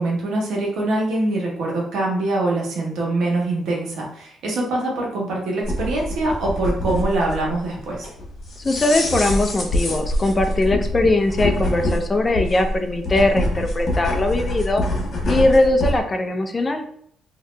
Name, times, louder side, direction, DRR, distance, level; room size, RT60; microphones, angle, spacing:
voice 1, 0.0-8.1, right 2 dB, 75° right, -2 dB, 1.2 m, -24 dB
sound 1, 5.6-16.0, left 1 dB, 55° left, 1.3 m, -25 dB
voice 2, 8.6-14.8 15.3-16.8, left 2 dB, 30° left, 6 dB, 0.5 m, -20 dB
3.0 x 2.8 x 3.2 m, 0.66 s
cardioid pair, 90°, 0 cm